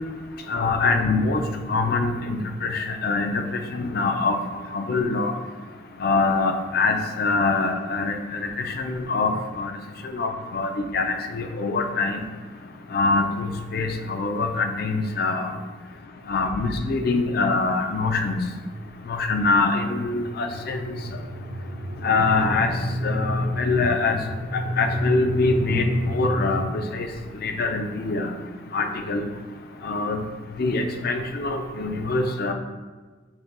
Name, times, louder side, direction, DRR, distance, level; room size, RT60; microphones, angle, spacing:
voice 1, 0.5-1.4 1.7-3.4 3.7-4.4 4.7-5.3 6.0-9.7 10.1-12.2 12.9-15.5 16.3-18.4 19.1-21.0 22.0-22.7 23.0-24.2 24.5-27.1 27.4-28.3 28.7-29.2 29.8-30.2 30.6-32.5, left 3 dB, 55° left, 5 dB, 0.5 m, -24 dB
sound 1, 18.5-26.7, equal, 70° right, 0.7 m, -30 dB
6.0 x 2.3 x 3.9 m, 1.4 s
head